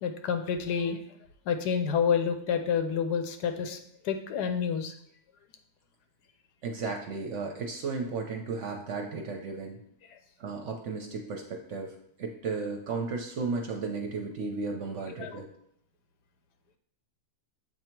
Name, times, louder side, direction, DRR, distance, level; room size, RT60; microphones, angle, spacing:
voice 1, 0.0-1.0 1.5-3.8 4.0-4.9 15.2-15.4, left 7 dB, 80° left, 7 dB, 1.2 m, -28 dB
voice 2, 6.6-9.8 10.4-15.5, right 4 dB, 60° right, 2 dB, 0.8 m, -34 dB
7.8 x 2.8 x 4.4 m, 0.69 s
omnidirectional pair, 1.7 m